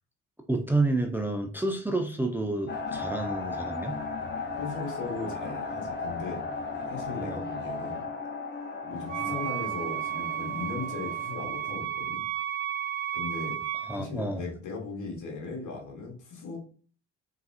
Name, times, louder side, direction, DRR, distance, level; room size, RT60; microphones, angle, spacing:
voice 1, 0.5-4.0 7.2-7.4 13.8-14.5, right 2 dB, 5° right, 3 dB, 0.7 m, -29 dB
sound 1, 2.7-11.7, left 4 dB, 30° left, 1.4 m, -36 dB
voice 2, 4.6-6.4 6.9-8.0 8.9-12.2 13.1-13.6 14.0-16.6, left 4 dB, 55° left, 0 dB, 1.9 m, -37 dB
Wind instrument woodwind instrument, 9.1-14.0, right 11 dB, 65° right, 0.5 m, -33 dB
4.0 x 3.8 x 2.9 m, 0.41 s
hypercardioid pair, 50°, 35 cm